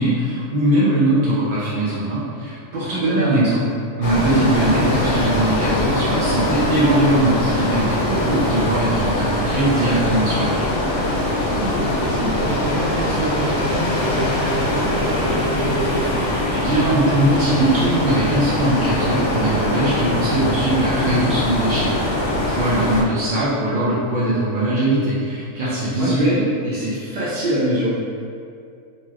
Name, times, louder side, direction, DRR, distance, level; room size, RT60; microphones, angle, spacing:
voice 1, 0.0-10.7 16.5-21.9 22.2-27.9, right 1 dB, 70° right, -9 dB, 0.4 m, -21 dB
voice 2, 2.9-3.2 11.5-16.1 26.0-26.1, right 1 dB, 35° right, -8 dB, 0.7 m, -26 dB
sound 1, 4.0-23.0, left 1 dB, 65° left, 0.9 m, -22 dB
3.0 x 2.7 x 2.3 m, 2.4 s
omnidirectional pair, 1.4 m